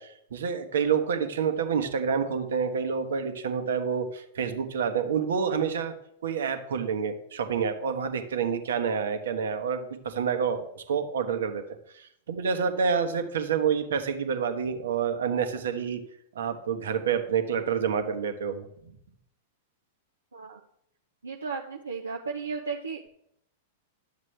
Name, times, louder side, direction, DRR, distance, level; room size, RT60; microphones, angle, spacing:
voice 1, 0.0-5.9 6.2-11.6 11.9-16.0 16.3-18.7, right 6 dB, 75° right, 7 dB, 1.2 m, -28 dB
voice 2, 21.2-23.1, right 5 dB, 90° right, 1 dB, 0.7 m, -34 dB
11.5 x 7.3 x 3.3 m, 0.73 s
hypercardioid pair, 105°, 0 cm